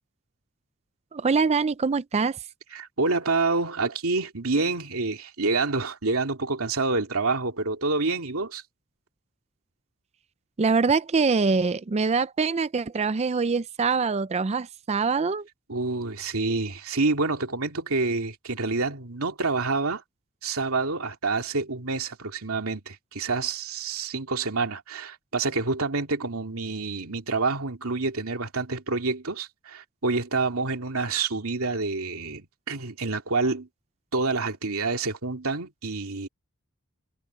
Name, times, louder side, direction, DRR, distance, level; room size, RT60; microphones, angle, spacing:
voice 1, 1.1-2.4 10.6-15.5, right 4 dB, 30° right, 0.4 m, -24 dB
voice 2, 2.7-8.6 15.7-20.0 20.4-33.7 34.1-36.3, right 3 dB, 75° right, 2.5 m, -27 dB
head